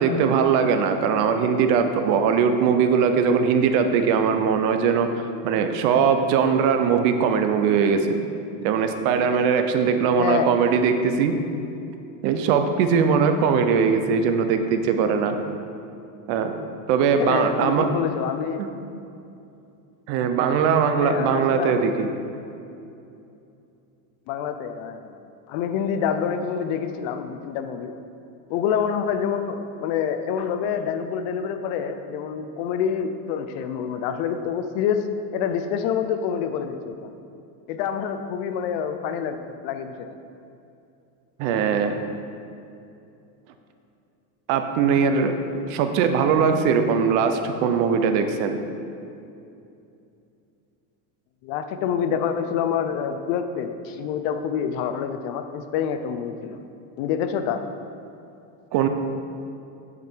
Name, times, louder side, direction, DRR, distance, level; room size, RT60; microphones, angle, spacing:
voice 1, 0.0-8.2 8.6-11.3 12.2-15.4 16.3-16.5 16.9-17.9 18.6-18.7 20.1-22.1 41.4-42.0 44.5-48.6 58.7-58.9, right 6 dB, 60° right, 7 dB, 0.7 m, -21 dB
voice 2, 10.2-10.5 17.2-18.6 21.0-22.0 24.3-25.1 25.5-27.9 28.5-35.1 35.3-37.1 37.7-40.1 51.4-56.6 57.0-57.6, left 7 dB, 55° left, 8 dB, 0.6 m, -27 dB
8.3 x 5.3 x 4.5 m, 2.7 s
supercardioid pair, 145°, 45 cm